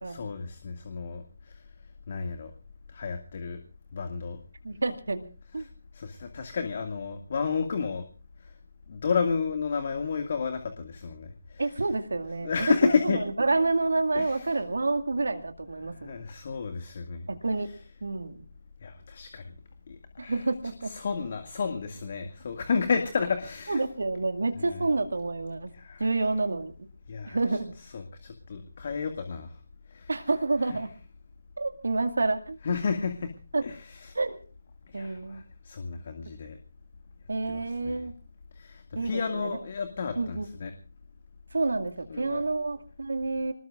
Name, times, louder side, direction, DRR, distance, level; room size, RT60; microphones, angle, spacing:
voice 1, 0.0-1.6 2.1-2.5 2.9-3.6 3.9-4.4 5.6-8.0 8.4-8.5 8.9-11.6 12.4-13.2 14.1-14.5 15.8-17.3 18.8-19.5 19.9-20.4 20.8-23.8 24.6-24.9 25.7-26.1 27.1-27.4 27.9-29.6 29.9-30.1 30.7-30.8 32.6-33.3 33.6-34.1 34.9-36.6 37.5-38.1 38.6-40.7 42.1-42.4, left 5 dB, 40° left, 7 dB, 2.0 m, -32 dB
voice 2, 4.6-5.2 5.5-5.7 11.6-16.2 17.3-17.7 18.0-18.5 20.2-20.9 23.7-25.7 26.0-26.7 27.2-27.7 30.1-30.9 31.6-32.6 33.5-33.6 34.1-34.4 34.9-35.4 37.3-38.1 38.9-39.6 40.2-40.5 41.5-43.5, right 3 dB, 65° right, 7 dB, 2.1 m, -28 dB
26.5 x 20.0 x 2.5 m, 0.37 s
figure-of-eight pair, 150°, 0 cm